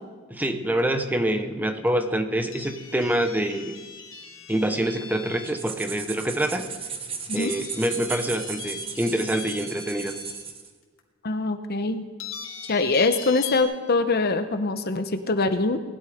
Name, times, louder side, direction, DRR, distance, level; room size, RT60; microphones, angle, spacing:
voice 1, 0.3-3.7 4.5-6.7 7.3-10.2, right 1 dB, 10° right, 7 dB, 0.9 m, -26 dB
sound 1, 2.5-5.6 7.4-10.3 11.0-11.1 12.2-13.6, left 6 dB, 70° left, 2.8 m, -40 dB
sound 2, 5.4-10.7, right 6 dB, 25° right, 1.4 m, -36 dB
voice 2, 11.2-12.0 12.7-15.8, left 3 dB, 50° left, 9 dB, 0.9 m, -23 dB
19.0 x 12.0 x 5.1 m, 1.5 s
head